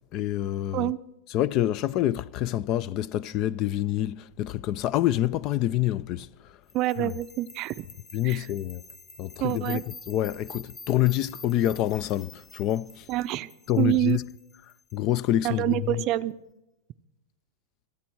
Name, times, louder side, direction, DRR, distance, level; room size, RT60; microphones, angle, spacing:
voice 1, 0.1-0.9 1.3-6.3 7.0-7.1 8.1-8.8 9.2-13.1 13.7-14.2 14.9-16.0, left 13 dB, 45° left, 0.4 m, -27 dB
sound 1, 6.7-15.7, left 3 dB, 20° left, 1.5 m, -48 dB
voice 2, 6.7-7.9 8.2-8.5 9.4-9.8 13.1-13.5 13.8-14.2 15.4-16.3, right 15 dB, 40° right, 0.5 m, -26 dB
25.5 x 8.6 x 4.6 m
hypercardioid pair, 125°, 0 cm